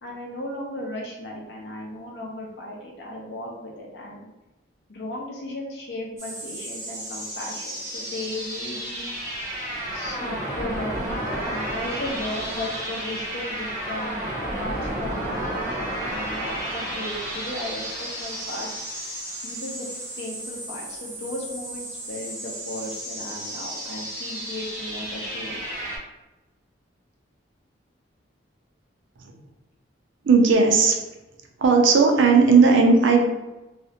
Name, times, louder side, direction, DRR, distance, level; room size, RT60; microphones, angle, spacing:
voice 1, 0.0-4.3 4.9-9.1 9.9-18.7 19.4-19.9 20.2-25.6, left 1 dB, 60° left, -2 dB, 0.6 m, -35 dB
sound 1, 6.2-26.0, right 1 dB, 15° right, 0.6 m, -32 dB
voice 2, 30.2-31.0 31.6-33.2, right 4 dB, 75° right, 3 dB, 0.4 m, -16 dB
2.4 x 2.1 x 2.8 m, 1.0 s
head